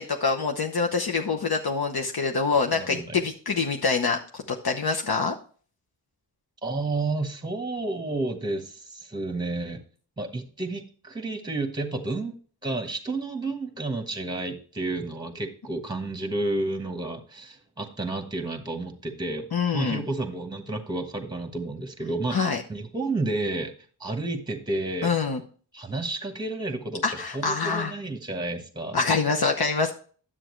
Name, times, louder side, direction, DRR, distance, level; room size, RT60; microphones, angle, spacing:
voice 1, 0.0-4.2 4.5-5.3 19.5-20.0 22.3-22.6 25.0-25.4 27.0-27.9 28.9-29.9, left 4 dB, 60° left, 2 dB, 0.9 m, -25 dB
voice 2, 2.7-3.2 6.6-9.8 10.2-12.3 12.6-23.7 24.0-25.2 25.7-27.0 27.3-29.0, right 2 dB, 10° right, 6 dB, 1.2 m, -31 dB
10.0 x 7.6 x 3.1 m, 0.42 s
wide cardioid pair, 105°, 42 cm